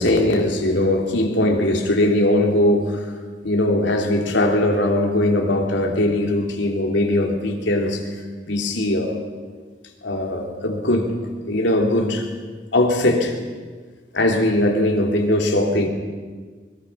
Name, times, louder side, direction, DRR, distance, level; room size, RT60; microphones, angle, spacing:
voice 1, 0.0-3.1 3.4-8.0 8.5-9.2 10.0-11.2 11.5-12.3 12.7-13.3 14.1-15.9, left 1 dB, 75° left, 2 dB, 3.3 m, -20 dB
24.5 x 22.0 x 5.8 m, 1.5 s
head